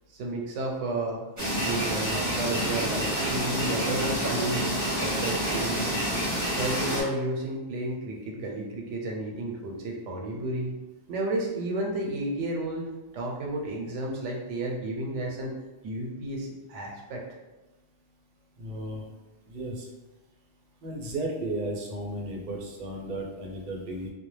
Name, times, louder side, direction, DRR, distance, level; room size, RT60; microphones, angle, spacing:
voice 1, 0.1-1.2 1.5-4.6 5.0-5.8 6.6-10.7 11.1-12.9 13.1-15.5 15.8-17.2, right 1 dB, 90° right, -1 dB, 0.9 m, -32 dB
sound 1, 1.4-7.0, equal, 20° right, 0.7 m, -28 dB
voice 2, 18.6-19.0 19.5-19.9 20.8-24.1, right 1 dB, 60° right, -1 dB, 0.6 m, -34 dB
2.3 x 2.0 x 3.1 m, 1.1 s
omnidirectional pair, 1.2 m